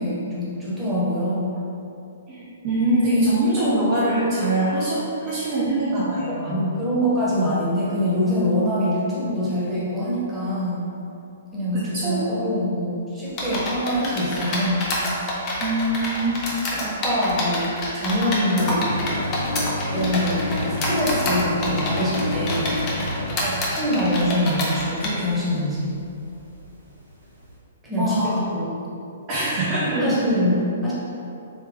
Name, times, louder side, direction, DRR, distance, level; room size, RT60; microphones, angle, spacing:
voice 1, 0.0-1.5 6.3-10.8 11.5-14.9 15.2-15.3 16.7-18.8 19.9-22.7 23.7-26.0 27.8-28.8 30.0-30.9, equal, 10° right, -9 dB, 1.3 m, -24 dB
voice 2, 2.3-6.6 11.7-12.4 15.6-16.4 23.4-23.6 28.0-28.4 29.3-30.1, right 1 dB, 35° right, -8 dB, 0.8 m, -23 dB
sound 1, 13.4-25.1, left 1 dB, 30° left, 0.9 m, -28 dB
sound 2, 18.6-24.4 25.0-26.6 26.8-27.0 27.3-27.5, left 1 dB, 85° right, 1.2 m, -29 dB
3.6 x 3.2 x 3.4 m, 2.7 s
figure-of-eight pair, 120°, 0 cm